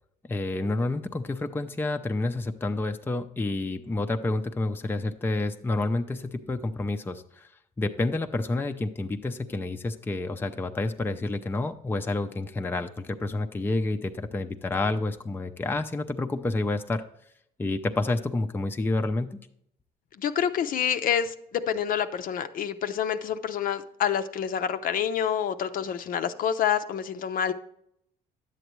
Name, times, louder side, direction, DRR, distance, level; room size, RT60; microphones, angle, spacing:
voice 1, 0.3-7.5 7.8-17.0 17.6-19.4, left 2 dB, 10° left, 6 dB, 0.5 m, -29 dB
voice 2, 20.2-27.5, left 8 dB, 55° left, 9 dB, 0.6 m, -27 dB
10.5 x 7.9 x 3.1 m, 0.72 s
cardioid pair, 110°, 17 cm